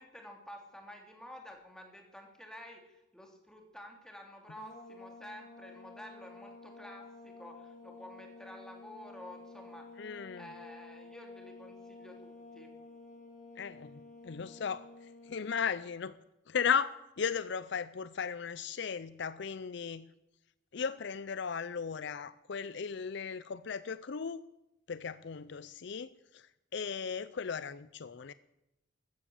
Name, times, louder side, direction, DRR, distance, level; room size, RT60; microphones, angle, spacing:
voice 1, 0.0-9.9 10.4-12.7, equal, 5° left, 2 dB, 2.8 m, -50 dB
sound 1, 4.6-15.6, left 3 dB, 40° left, 1.8 m, -51 dB
voice 2, 10.0-10.5 13.6-14.9 15.2-16.1 16.5-20.0 20.7-24.4 24.9-28.3, left 6 dB, 60° left, 16 dB, 0.5 m, -36 dB
14.5 x 14.0 x 7.1 m, 0.90 s
head